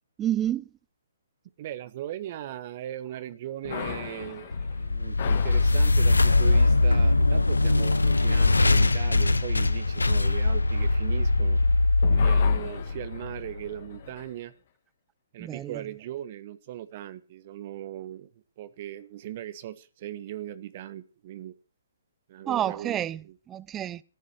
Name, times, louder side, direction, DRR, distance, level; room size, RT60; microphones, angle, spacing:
voice 1, 0.2-0.6 15.4-15.7 22.5-23.2 23.5-24.0, right 11 dB, 20° right, 0.7 m, -29 dB
voice 2, 1.6-4.5 4.7-11.6 12.1-14.5 15.3-18.3 18.6-21.6 22.3-23.4, right 12 dB, 45° right, 1.5 m, -39 dB
sound 1, 3.6-11.7 12.0-14.3, left 9 dB, 50° left, 2.2 m, -40 dB
sound 2, 4.5-13.7, left 3 dB, 90° left, 1.0 m, -22 dB
14.5 x 11.0 x 6.7 m
figure-of-eight pair, 135°, 0 cm